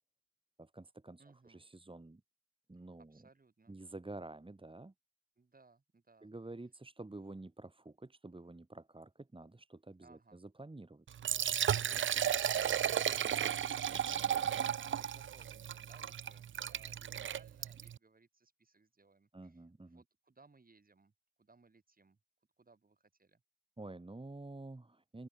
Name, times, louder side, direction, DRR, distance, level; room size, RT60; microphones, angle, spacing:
voice 1, 0.6-2.2 2.7-3.2 3.7-4.9 6.2-11.2 19.3-20.0 23.8-25.3, right 2 dB, 25° right, 3.3 m, -49 dB
voice 2, 1.2-1.6 3.1-3.8 5.4-6.3 10.0-10.4 15.0-21.1 21.4-22.2 22.6-23.4, right 3 dB, 45° right, 7.8 m, -65 dB
Liquid, 11.1-18.0, right 9 dB, 75° right, 0.6 m, -34 dB
open air
cardioid pair, 50°, 20 cm